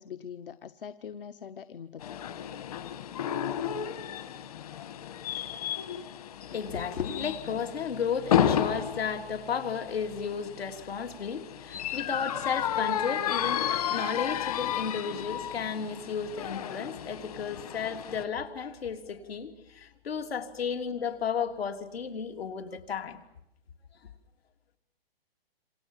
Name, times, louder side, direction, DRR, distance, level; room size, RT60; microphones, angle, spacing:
voice 1, 0.0-2.3, left 7 dB, 60° left, 1.0 m, -43 dB
sound 1, 2.0-18.2, left 10 dB, 40° left, 1.4 m, -32 dB
voice 2, 6.5-23.2, left 6 dB, 80° left, 3.5 m, -33 dB
28.0 x 27.0 x 7.4 m
hypercardioid pair, 175°, 30 cm